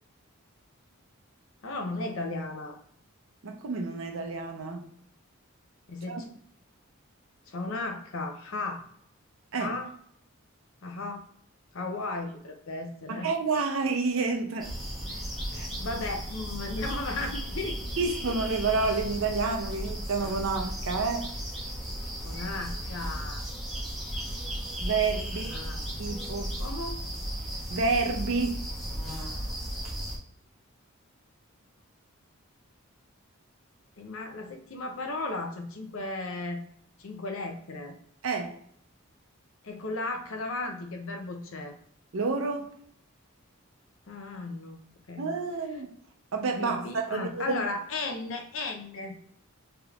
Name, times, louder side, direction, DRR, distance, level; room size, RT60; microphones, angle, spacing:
voice 1, 1.6-2.8 5.9-6.3 7.5-8.8 9.6-9.9 10.8-11.3 11.7-13.3 15.5-17.8 22.2-23.4 25.4-25.8 26.6-27.0 34.0-36.6 37.0-37.9 39.6-41.8 44.1-44.8 45.1-45.3 46.6-49.1, left 2 dB, 70° left, 0.6 m, -35 dB
voice 2, 3.4-4.9 6.1-6.2 9.5-9.7 13.1-14.7 15.5-15.7 18.0-21.3 24.8-25.5 26.0-26.5 27.7-28.7 38.2-38.6 42.1-42.7 45.2-45.9 46.3-47.6, right 4 dB, 65° right, 0.5 m, -29 dB
sound 1, 14.6-30.2, equal, ahead, 0.9 m, -35 dB
3.4 x 2.9 x 2.4 m
head